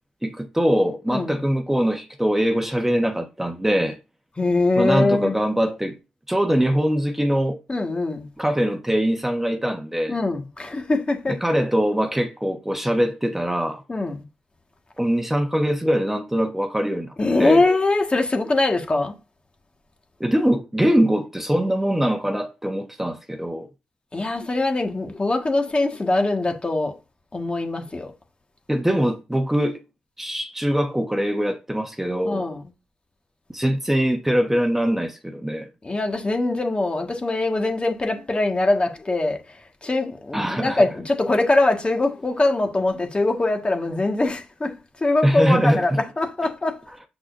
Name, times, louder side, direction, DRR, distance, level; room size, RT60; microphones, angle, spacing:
voice 1, 0.2-4.0 4.8-6.0 6.3-7.6 8.4-10.2 11.4-13.8 15.0-17.6 20.2-23.7 28.7-29.8 30.2-32.4 33.5-35.7 40.3-40.8 45.2-46.0, equal, 10° right, 1.2 m, -22 dB
voice 2, 1.1-1.4 4.4-5.4 7.7-8.3 10.1-11.4 13.9-14.2 17.2-19.2 24.1-27.0 27.3-28.1 32.2-32.6 35.8-46.8, left 2 dB, 30° left, 1.7 m, -22 dB
6.3 x 6.0 x 2.6 m
supercardioid pair, 45°, 3 cm